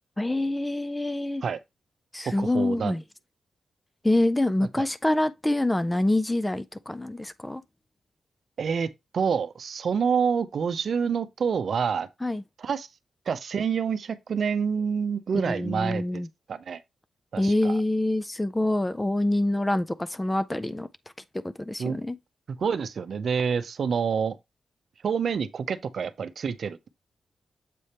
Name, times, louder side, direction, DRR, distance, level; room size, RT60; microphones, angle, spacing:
voice 1, 0.2-1.4 2.1-3.0 4.0-7.6 12.2-12.4 15.4-16.3 17.4-20.9 21.6-22.2, left 1 dB, 10° left, 0.4 m, -26 dB
voice 2, 2.2-2.9 8.6-12.1 12.6-12.9 13.3-16.2 16.5-16.8 17.3-17.8 21.8-22.0 22.5-24.4 25.0-26.9, right 6 dB, 60° right, 0.6 m, -27 dB
7.6 x 3.4 x 4.2 m
wide cardioid pair, 115°, 0 cm